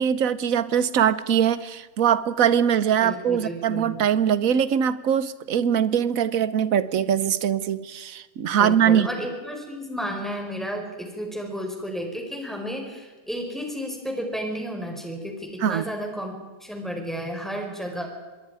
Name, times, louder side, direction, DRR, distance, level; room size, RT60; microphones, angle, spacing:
voice 1, 0.0-9.1 15.6-15.8, right 8 dB, 60° right, 15 dB, 1.3 m, -22 dB
voice 2, 3.0-4.0 8.6-18.1, equal, ahead, 1 dB, 4.6 m, -32 dB
25.5 x 22.0 x 4.9 m, 1.3 s
omnidirectional pair, 1.7 m